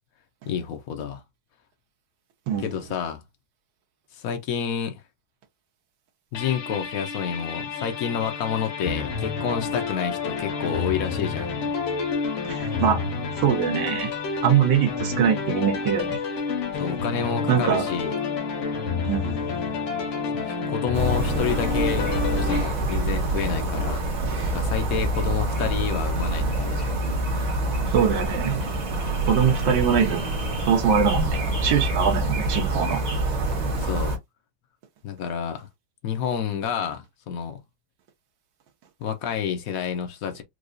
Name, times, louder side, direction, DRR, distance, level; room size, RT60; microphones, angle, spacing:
voice 1, 0.5-1.2 2.6-3.2 4.1-5.0 6.3-11.6 16.8-18.1 20.3-24.0 24.5-27.0 27.3-27.5 33.8-34.1 35.0-35.7 36.0-37.6 39.0-40.4, left 7 dB, 70° left, 0.8 m, -29 dB
sound 1, 6.3-22.6, left 5 dB, 85° left, 2.0 m, -29 dB
voice 2, 12.4-13.0 13.4-14.1 14.4-16.2 17.5-17.9 19.0-19.5 27.9-28.6 29.3-30.3 30.7-33.0, right 8 dB, 65° right, 1.6 m, -22 dB
sound 2, 20.9-34.2, right 2 dB, 50° right, 1.7 m, -26 dB
4.7 x 2.3 x 2.6 m
omnidirectional pair, 2.3 m